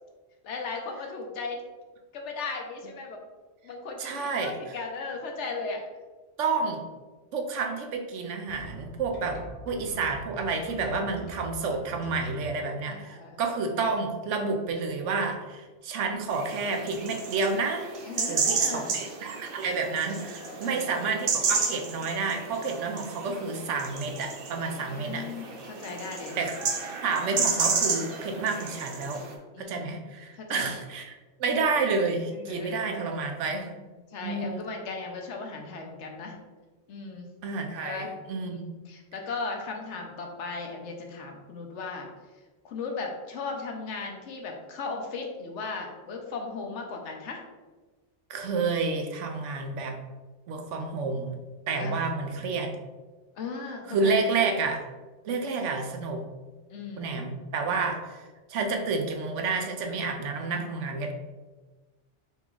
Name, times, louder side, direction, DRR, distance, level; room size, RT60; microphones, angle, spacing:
voice 1, 0.4-1.6 2.1-3.2 3.6-5.8 12.9-13.4 18.1-18.9 20.3-20.8 24.8-26.5 29.5-29.9 30.4-30.7 32.3-33.1 33.7-33.8 34.1-36.4 36.9-37.3 37.8-38.1 38.4-38.6 38.9-42.1 42.6-47.4 51.7-52.1 53.4-54.2 56.7-57.2 57.7-57.8 60.4-60.6, left 4 dB, 75° left, 2 dB, 1.1 m, -37 dB
voice 2, 4.0-4.5 6.4-6.9 7.3-17.9 18.3-25.3 26.4-26.5 27.0-29.2 29.6-33.7 34.2-34.6 37.4-38.7 48.3-50.0 50.5-51.4 51.7-52.8 53.9-54.8 55.2-56.3 57.0-58.0 58.5-61.1, right 4 dB, 90° right, 4 dB, 1.0 m, -30 dB
sound 1, 8.5-12.5, left 2 dB, 35° left, 0.8 m, -44 dB
sound 2, 16.3-29.3, right 5 dB, 55° right, 0.8 m, -31 dB
4.1 x 3.0 x 3.7 m, 1.3 s
omnidirectional pair, 1.2 m